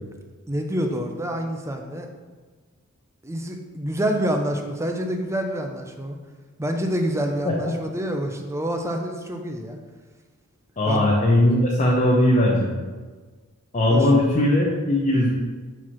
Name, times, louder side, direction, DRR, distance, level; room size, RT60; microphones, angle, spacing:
voice 1, 0.5-2.1 3.2-6.2 6.6-9.8 10.9-11.1 13.9-14.0, right 1 dB, 15° right, 4 dB, 0.6 m, -27 dB
voice 2, 10.8-12.7 13.7-15.3, left 1 dB, 35° left, -4 dB, 0.9 m, -19 dB
4.7 x 4.6 x 5.7 m, 1.4 s
head